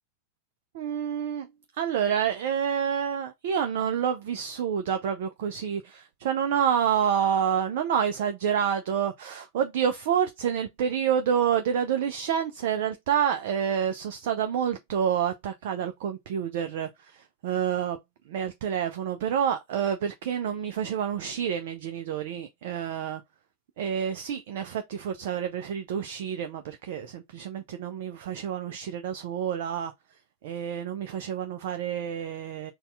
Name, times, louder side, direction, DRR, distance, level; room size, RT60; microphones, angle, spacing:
voice 1, 0.7-18.0 18.3-23.2 23.8-29.9 30.4-32.7, right 8 dB, 55° right, 0.5 m, -28 dB
4.1 x 2.3 x 3.2 m
figure-of-eight pair, 90°, 0 cm